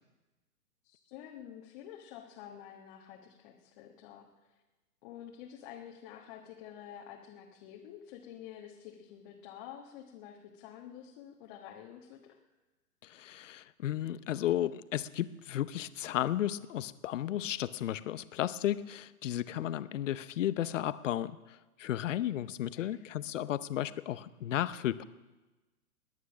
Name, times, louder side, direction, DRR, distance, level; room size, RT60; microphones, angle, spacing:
voice 1, 0.8-4.6 5.0-12.4 22.7-23.1, left 10 dB, 35° left, 0 dB, 1.4 m, -49 dB
voice 2, 13.0-25.0, left 12 dB, 55° left, 15 dB, 0.8 m, -34 dB
20.5 x 9.6 x 6.2 m, 1.2 s
hypercardioid pair, 130°, 46 cm